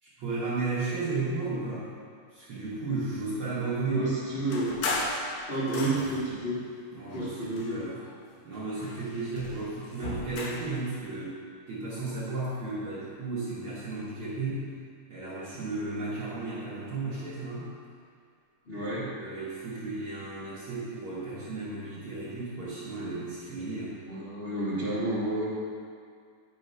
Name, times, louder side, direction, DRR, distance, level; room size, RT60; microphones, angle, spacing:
voice 1, 0.0-1.9 2.3-4.4 6.9-8.0 8.4-14.7 15.1-17.7 18.7-24.0, right 3 dB, 55° right, -10 dB, 1.5 m, -34 dB
voice 2, 3.9-4.7 5.5-6.6 7.1-7.8 18.7-19.1 24.1-25.4, right 2 dB, 35° left, -12 dB, 0.9 m, -30 dB
sound 1, 4.5-6.4 7.1-8.2 8.5-10.8, left 2 dB, 75° left, 1.7 m, -36 dB
9.0 x 3.1 x 5.4 m, 2.1 s
omnidirectional pair, 3.7 m